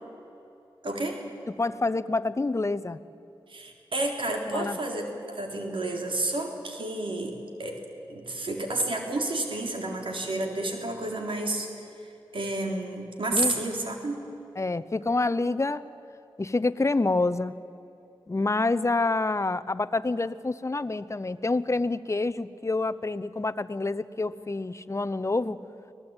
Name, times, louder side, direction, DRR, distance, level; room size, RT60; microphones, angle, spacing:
voice 1, 0.8-1.2 3.5-7.3 7.6-7.8 8.1-11.7 12.3-14.2, right 2 dB, 65° right, 2 dB, 3.7 m, -30 dB
voice 2, 1.5-3.0 4.5-4.8 13.3-13.5 14.6-15.9 16.4-17.6 18.3-25.6, left 3 dB, 30° left, 14 dB, 0.9 m, -27 dB
24.5 x 17.5 x 9.0 m, 2.7 s
cardioid pair, 50°, 10 cm